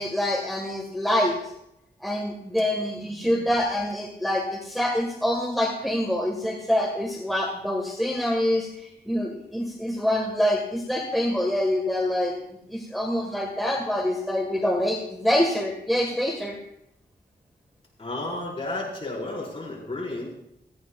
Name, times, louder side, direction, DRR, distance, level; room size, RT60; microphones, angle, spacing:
voice 1, 0.0-1.4 2.0-8.7 9.0-12.3 12.7-16.5, left 1 dB, ahead, -1 dB, 1.7 m, -25 dB
voice 2, 3.1-3.4 18.0-20.3, left 2 dB, 30° left, -5 dB, 5.3 m, -33 dB
17.5 x 15.0 x 2.4 m, 0.79 s
wide cardioid pair, 110°, 18 cm